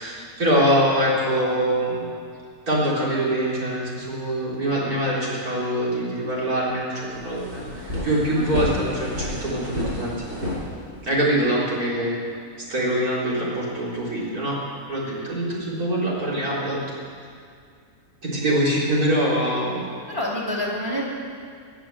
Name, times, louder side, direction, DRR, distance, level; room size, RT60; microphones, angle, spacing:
voice 1, 0.0-2.1 2.7-10.2 11.0-12.2 12.7-14.6 14.9-16.8 18.2-19.9, right 1 dB, 80° right, -6 dB, 4.1 m, -24 dB
sound 1, 6.7-6.8 7.1-11.3, left 1 dB, 45° right, 5.5 m, -30 dB
voice 2, 20.1-21.0, left 1 dB, 15° right, -4 dB, 3.1 m, -27 dB
20.5 x 7.1 x 7.6 m, 2.3 s
omnidirectional pair, 1.5 m